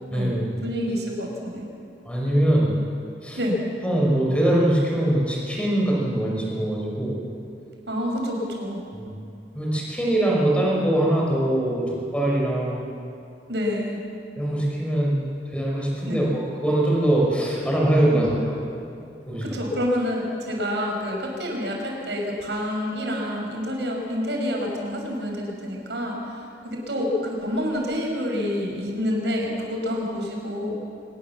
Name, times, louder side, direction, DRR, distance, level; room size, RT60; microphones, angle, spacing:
voice 1, 0.1-0.5 2.1-2.7 3.2-3.4 3.8-7.2 8.9-9.1 9.5-12.9 14.4-18.6 19.3-19.5, right 1 dB, 5° left, -3 dB, 5.5 m, -22 dB
voice 2, 0.6-1.7 3.4-3.6 7.9-8.8 13.5-14.0 16.1-16.2 18.1-18.2 19.4-30.8, equal, 85° right, 0 dB, 5.8 m, -28 dB
24.5 x 19.5 x 7.3 m, 2.6 s
head